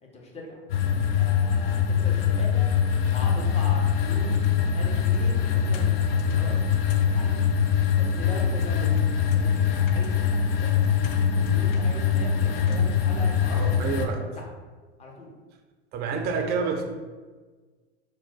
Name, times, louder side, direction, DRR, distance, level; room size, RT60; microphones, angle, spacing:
voice 1, 0.0-0.6 0.8-2.7 3.1-7.3 8.0-10.7 11.4-14.5 15.0-15.3 15.9-16.5, left 1 dB, 20° left, -1 dB, 0.7 m, -40 dB
sound 1, 0.7-14.1, left 7 dB, 55° left, 0.5 m, -23 dB
voice 2, 13.5-14.2 15.9-16.8, right 5 dB, 30° right, 4 dB, 0.5 m, -28 dB
3.0 x 2.1 x 3.9 m, 1.4 s
hypercardioid pair, 95°, 35 cm